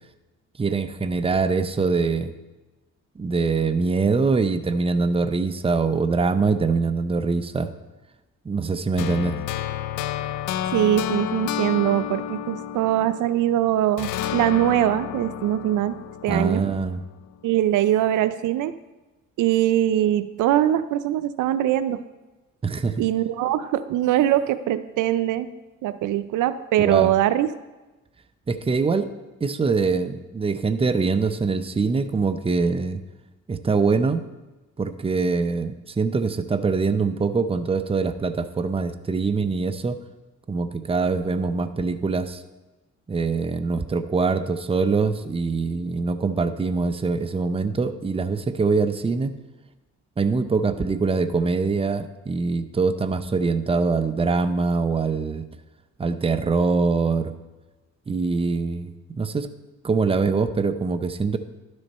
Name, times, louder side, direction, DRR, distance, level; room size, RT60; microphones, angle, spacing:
voice 1, 0.6-2.3 3.2-7.7 8.4-9.4 16.3-17.0 22.6-23.1 26.8-27.1 28.5-29.1 29.4-33.0 33.5-34.2 34.8-40.0 40.5-42.4 43.1-49.3 50.2-55.4 56.0-57.3 58.1-59.5 59.8-61.4, right 4 dB, 20° right, 10 dB, 0.6 m, -23 dB
sound 1, 9.0-13.5 14.0-17.1, left 10 dB, 85° left, 0.5 m, -30 dB
voice 2, 10.7-16.0 16.2-16.6 17.4-18.8 19.4-22.0 23.0-25.5 25.8-27.5, right 12 dB, 80° right, 13 dB, 0.5 m, -22 dB
11.5 x 6.4 x 4.2 m, 1.1 s
cardioid pair, 90°, 30 cm